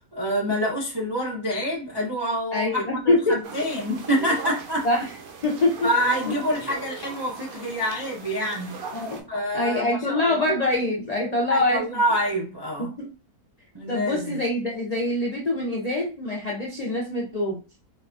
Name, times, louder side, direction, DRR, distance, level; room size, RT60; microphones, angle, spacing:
voice 1, 0.1-4.9 5.8-8.7 9.3-10.5 11.5-12.9 13.7-14.4, equal, 40° right, 0.3 m, -27 dB
voice 2, 2.5-3.4 4.2-4.3 4.8-5.1 5.4-5.9 6.3-6.4 8.9-9.2 9.5-11.8 12.9-13.1 13.9-17.6, left 2 dB, 60° left, 0.4 m, -24 dB
sound 1, 3.4-9.2, right 5 dB, 75° right, 1.1 m, -38 dB
3.9 x 2.3 x 2.5 m
omnidirectional pair, 1.6 m